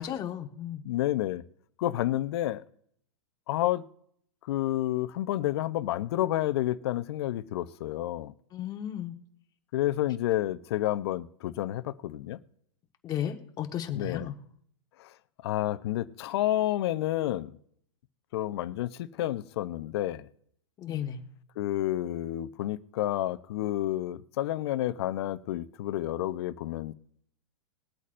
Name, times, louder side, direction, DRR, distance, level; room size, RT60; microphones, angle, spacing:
voice 1, 0.0-0.8 8.5-9.1 13.0-14.4 20.8-21.2, left 10 dB, 25° left, 1.4 m, -34 dB
voice 2, 0.8-1.4 1.8-2.6 3.5-3.8 4.5-8.3 9.7-12.4 13.9-14.3 15.0-15.1 15.4-17.5 18.3-20.3 21.6-26.9, left 14 dB, 60° left, 0.7 m, -30 dB
21.0 x 8.2 x 2.6 m
hypercardioid pair, 125°, 15 cm